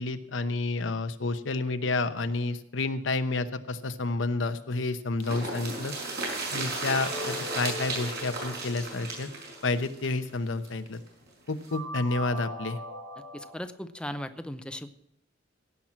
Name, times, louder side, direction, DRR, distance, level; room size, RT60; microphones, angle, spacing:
voice 1, 0.0-5.9 6.5-9.3 9.6-11.0 11.5-12.8, left 3 dB, 90° left, 10 dB, 0.9 m, -30 dB
sound 1, 5.2-10.9 11.3-11.4 11.6-11.7, right 2 dB, 60° right, 5.8 m, -34 dB
sound 2, 6.9-9.9 11.7-13.6, equal, 85° right, 4.3 m, -40 dB
voice 2, 13.3-14.9, equal, 5° left, 9 dB, 0.6 m, -37 dB
16.5 x 6.0 x 7.4 m, 0.79 s
head